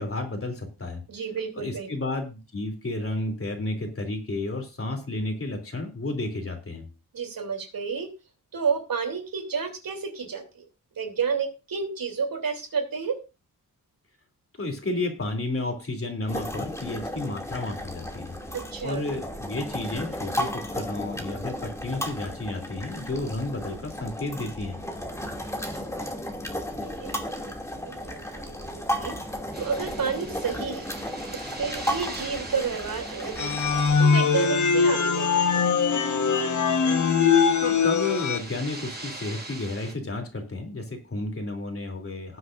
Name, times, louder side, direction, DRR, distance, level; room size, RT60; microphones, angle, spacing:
voice 1, 0.0-1.0 1.6-6.9 14.6-18.3 18.8-24.8 37.6-42.4, left 2 dB, 35° left, 4 dB, 3.1 m, -32 dB
voice 2, 1.1-1.9 7.1-8.1 8.5-10.6 11.0-13.2 18.5-19.0 25.8-26.2 26.8-27.3 27.8-29.1 29.6-30.9 31.3-33.5 34.0-35.7, right 6 dB, 65° right, 4 dB, 3.2 m, -31 dB
sound 1, 16.3-34.0, equal, 10° left, 2.5 m, -34 dB
sound 2, 29.5-39.9, right 2 dB, 25° right, 5.6 m, -42 dB
sound 3, 33.4-38.4, left 5 dB, 50° left, 1.3 m, -22 dB
19.0 x 7.8 x 2.6 m, 0.29 s
cardioid pair, 85°, 37 cm